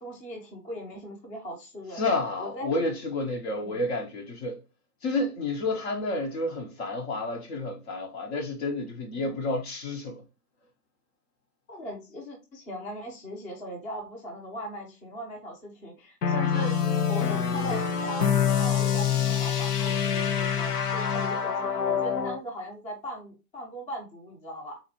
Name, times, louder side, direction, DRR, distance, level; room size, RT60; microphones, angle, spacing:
voice 1, 0.0-2.0 2.4-2.9 3.6-3.8 9.1-9.4 11.7-16.8 17.1-24.8, equal, 15° left, 0.8 m, -39 dB
voice 2, 2.0-4.6 5.0-10.2 17.2-17.4, left 2 dB, 40° left, 1.0 m, -30 dB
sound 1, 16.2-22.4, left 7 dB, 70° left, 0.9 m, -26 dB
4.0 x 2.6 x 2.8 m
hypercardioid pair, 135°, 47 cm